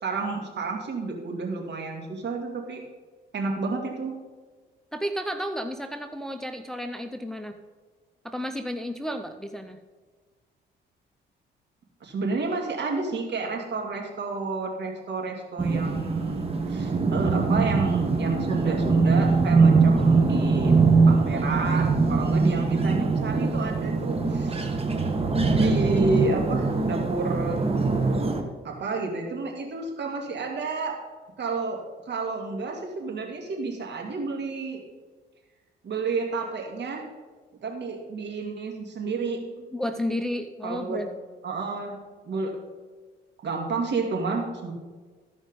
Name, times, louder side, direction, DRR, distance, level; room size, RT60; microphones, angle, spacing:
voice 1, 0.0-2.8 3.3-4.1 12.0-20.7 21.1-24.7 25.5-27.6 28.6-30.9 31.4-34.8 35.8-37.0 37.6-39.4 40.6-41.0 41.4-42.0 42.2-42.5 43.4-44.7, right 3 dB, 60° right, 0 dB, 2.5 m, -30 dB
voice 2, 4.9-7.6 8.2-9.8 19.8-20.1 39.7-41.1, equal, ahead, 7 dB, 0.6 m, -32 dB
sound 1, 15.6-28.4, right 4 dB, 30° right, 1.3 m, -22 dB
14.0 x 5.2 x 5.4 m, 1.4 s
cardioid pair, 90°, 20 cm